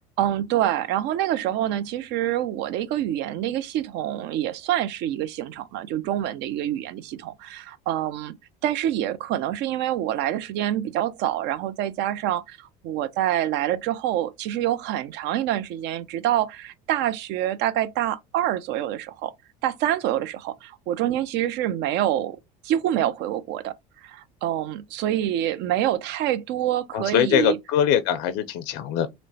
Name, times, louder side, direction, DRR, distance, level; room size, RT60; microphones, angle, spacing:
voice 1, 0.2-8.4 8.6-19.3 19.6-22.4 22.6-23.7 24.0-27.6, right 12 dB, 60° right, 0.4 m, -26 dB
voice 2, 26.9-29.1, left 9 dB, 70° left, 0.4 m, -22 dB
3.0 x 2.0 x 2.6 m
supercardioid pair, 80°, 20 cm